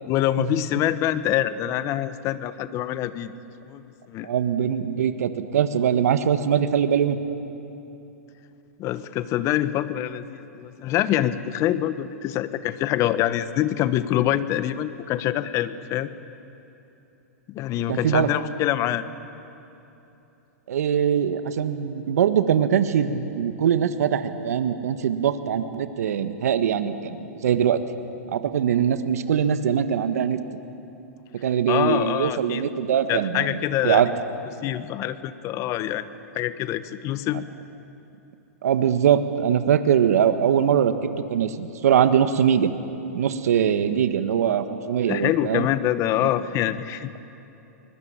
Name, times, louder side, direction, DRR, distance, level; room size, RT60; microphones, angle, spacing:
voice 1, 0.1-3.3 3.6-4.3 8.8-16.1 17.5-19.0 31.7-32.6 33.1-34.0 34.6-36.1 36.3-37.4 45.1-47.1, left 12 dB, 35° left, 13 dB, 1.1 m, -25 dB
voice 2, 4.2-7.2 17.9-18.3 20.7-27.8 28.3-30.4 31.3-33.6 33.8-34.1 38.6-40.9 41.3-42.7 43.1-45.7, right 8 dB, 75° right, 10 dB, 1.5 m, -22 dB
24.0 x 21.0 x 8.9 m, 2.9 s
hypercardioid pair, 125°, 8 cm